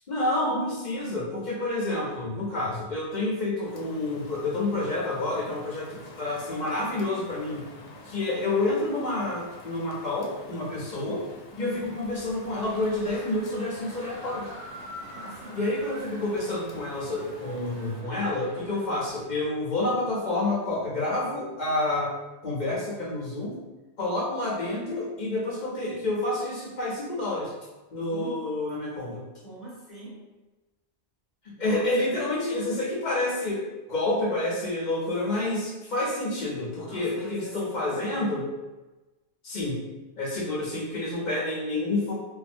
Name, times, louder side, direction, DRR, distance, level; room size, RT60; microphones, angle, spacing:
voice 1, 0.1-7.7 8.1-11.3 11.6-14.5 15.5-22.1 22.4-23.6 24.0-27.5 27.9-29.2 31.4-33.6 33.9-38.4 39.4-39.8 40.2-42.1, left 2 dB, 50° left, -4 dB, 0.7 m, -29 dB
sound 1, 1.6-19.3, right 1 dB, 90° right, 0.9 m, -49 dB
Rain, 3.6-18.0, left 2 dB, 85° left, 0.9 m, -48 dB
voice 2, 11.5-12.0 15.0-15.6 18.6-18.9 28.1-28.8 29.4-30.3 31.6-32.2 36.8-38.3, right 1 dB, ahead, -11 dB, 1.3 m, -43 dB
3.0 x 2.3 x 2.5 m, 1.1 s
omnidirectional pair, 1.2 m